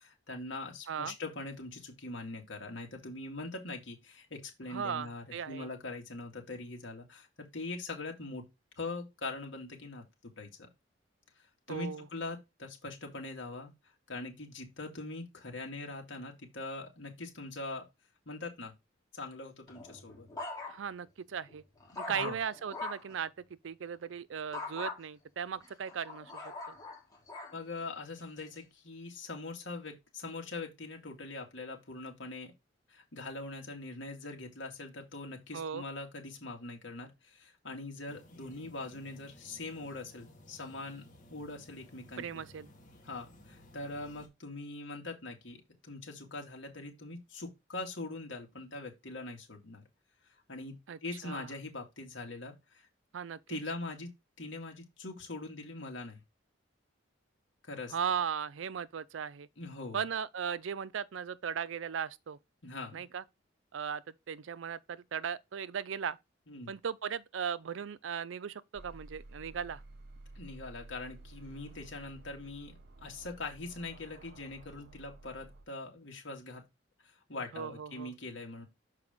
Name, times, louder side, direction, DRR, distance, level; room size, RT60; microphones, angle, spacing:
voice 1, 0.0-8.4 8.8-10.0 10.4-10.7 11.4-13.7 14.1-17.9 18.3-18.7 19.1-20.3 22.1-22.4 27.5-32.5 32.9-42.4 43.0-49.8 50.5-50.8 51.0-52.9 53.5-54.1 54.4-56.2 57.6-58.0 59.6-60.0 62.6-63.0 66.5-66.7 70.4-76.6 77.0-78.7, left 2 dB, 75° left, 2.0 m, -42 dB
voice 2, 4.7-5.7 11.7-12.1 20.7-21.6 22.0-23.3 23.6-26.4 26.7-26.8 35.5-35.8 42.2-42.7 50.9-51.5 53.1-53.6 57.9-59.5 59.9-62.4 62.9-63.2 63.7-66.2 66.7-69.8 77.5-78.1, right 7 dB, 75° right, 0.5 m, -37 dB
sound 1, 19.7-21.0 21.5-23.2 24.5-25.0 25.6-27.6 28.2-28.6, left 3 dB, 20° left, 2.5 m, -42 dB
sound 2, 38.1-44.3, left 1 dB, 45° left, 1.8 m, -57 dB
sound 3, 68.7-75.7, right 2 dB, 60° right, 1.0 m, -53 dB
6.6 x 4.8 x 3.5 m
head